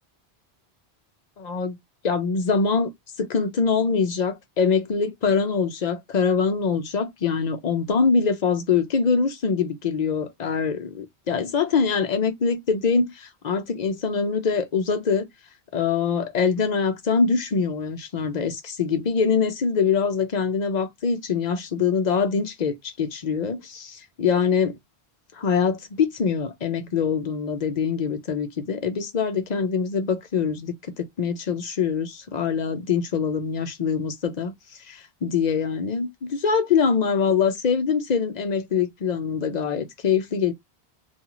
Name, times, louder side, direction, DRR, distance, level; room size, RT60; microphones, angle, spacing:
voice 1, 1.4-1.8 2.0-2.9 3.2-15.2 15.7-24.8 25.4-34.5 34.9-40.5, left 5 dB, 50° left, 0.6 m, -24 dB
2.6 x 2.4 x 2.9 m
omnidirectional pair, 1.1 m